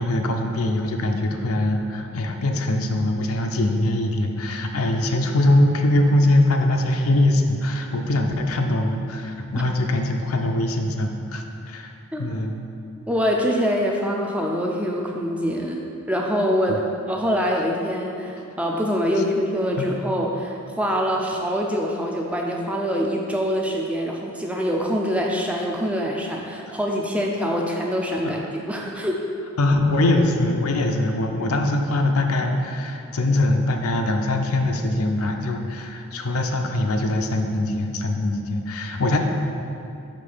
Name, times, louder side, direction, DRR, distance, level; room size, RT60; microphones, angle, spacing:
voice 1, 0.0-11.9 12.2-12.6 16.7-16.9 19.8-19.9 28.2-28.4 29.6-39.2, left 1 dB, 75° left, 4 dB, 0.5 m, -22 dB
voice 2, 13.1-29.2, equal, 5° right, -1 dB, 0.4 m, -24 dB
5.2 x 3.7 x 5.5 m, 2.7 s
head